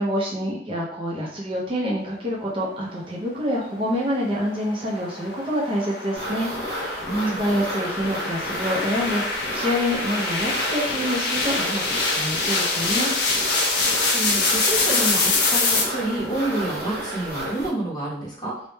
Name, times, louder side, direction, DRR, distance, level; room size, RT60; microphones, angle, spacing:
voice 1, 0.0-7.0 7.4-13.1, equal, 30° right, -3 dB, 0.4 m, -27 dB
sound 1, 3.8-15.8, left 3 dB, 60° left, 0.5 m, -25 dB
sound 2, 6.1-17.7, equal, 60° right, 0.8 m, -31 dB
voice 2, 7.0-7.4 14.1-18.6, right 2 dB, 25° left, -5 dB, 0.7 m, -28 dB
2.1 x 2.0 x 2.9 m, 0.66 s
head